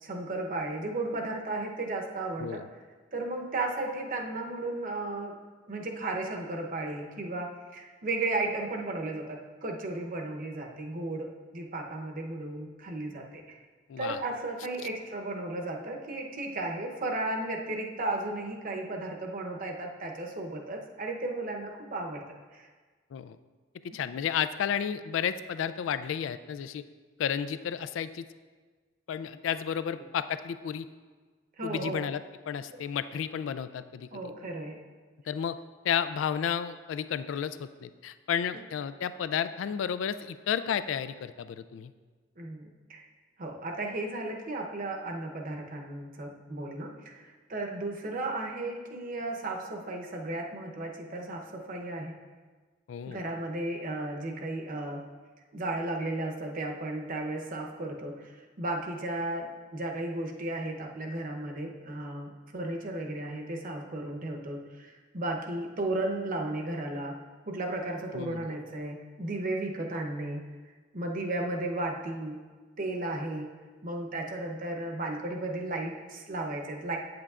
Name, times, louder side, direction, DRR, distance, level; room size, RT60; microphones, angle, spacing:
voice 1, 0.0-2.6 3.1-5.4 5.7-11.3 11.5-13.6 14.0-22.2 22.5-22.7 31.6-32.0 34.1-34.8 38.5-38.6 42.4-43.0 43.4-52.1 53.1-55.0 55.5-67.2 67.5-70.4 70.9-72.4 72.8-73.5 73.8-77.0, right 2 dB, 45° right, 2 dB, 0.8 m, -34 dB
voice 2, 23.9-26.8 27.2-28.2 29.1-30.9 31.6-34.2 35.3-35.6 35.8-41.9 52.9-53.2 68.1-68.5, left 8 dB, 85° left, 13 dB, 0.3 m, -32 dB
8.6 x 7.8 x 2.4 m, 1.4 s
head